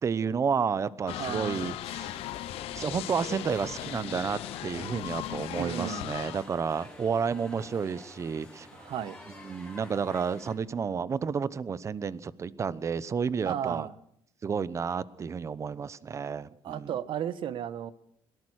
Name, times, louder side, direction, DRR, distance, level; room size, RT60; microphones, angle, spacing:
voice 1, 0.0-2.2 2.7-8.7 9.4-13.9 14.4-16.9, right 6 dB, 30° right, 18 dB, 0.9 m, -31 dB
sound 1, 1.1-6.5, left 15 dB, 80° left, 0.9 m, -38 dB
voice 2, 1.2-1.8 4.0-4.2 5.5-6.0 8.7-9.2 13.4-14.0 16.6-17.9, right 10 dB, 60° right, 15 dB, 1.3 m, -34 dB
sound 2, 2.0-10.5, left 2 dB, 10° left, 4.5 m, -49 dB
22.0 x 19.0 x 6.4 m, 0.67 s
cardioid pair, 135°, 10 cm